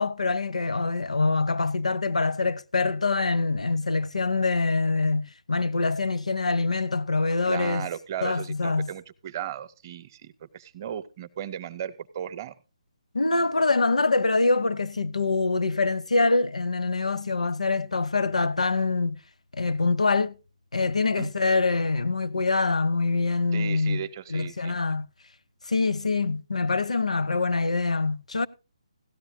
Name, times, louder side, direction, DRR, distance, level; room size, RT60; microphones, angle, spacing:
voice 1, 0.0-7.9 8.2-8.9 13.1-19.2 19.5-20.3 20.7-24.0 24.3-25.1 25.7-28.5, left 3 dB, 75° left, 0.6 m, -25 dB
voice 2, 7.5-12.5 21.1-21.3 23.5-24.8, right 10 dB, 30° right, 0.7 m, -36 dB
17.0 x 13.0 x 2.6 m
figure-of-eight pair, 145°, 4 cm